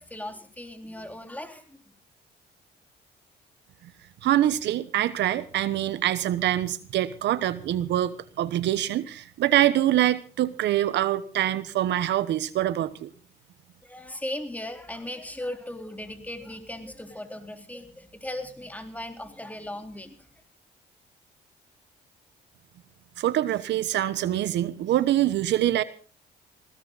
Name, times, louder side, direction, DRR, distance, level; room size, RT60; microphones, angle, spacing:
voice 1, 0.0-1.9 13.8-20.3, left 1 dB, 10° left, 6 dB, 3.8 m, -38 dB
voice 2, 4.2-13.1 23.2-25.8, right 13 dB, 80° right, 15 dB, 1.1 m, -25 dB
20.0 x 17.0 x 4.1 m, 0.37 s
cardioid pair, 75°, 18 cm